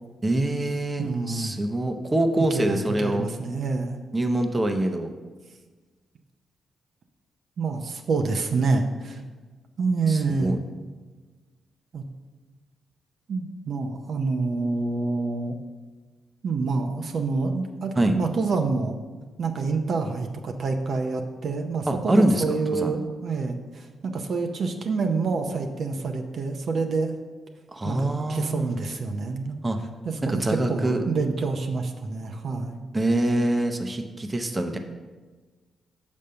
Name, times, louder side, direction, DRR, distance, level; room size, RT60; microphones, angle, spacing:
voice 1, 0.2-3.2 4.1-5.1 10.1-10.6 18.0-18.2 21.9-22.4 22.7-22.9 27.7-28.8 29.6-29.8 30.2-31.0 32.9-34.8, right 1 dB, 20° right, 5 dB, 0.7 m, -24 dB
voice 2, 1.0-1.5 2.4-4.0 7.6-9.2 9.8-10.6 11.9-12.0 13.3-15.6 16.4-19.0 19.4-27.1 27.8-29.6 30.0-32.8, right 4 dB, 60° right, 4 dB, 0.7 m, -27 dB
6.5 x 5.3 x 5.5 m, 1.3 s
cardioid pair, 85°, 0 cm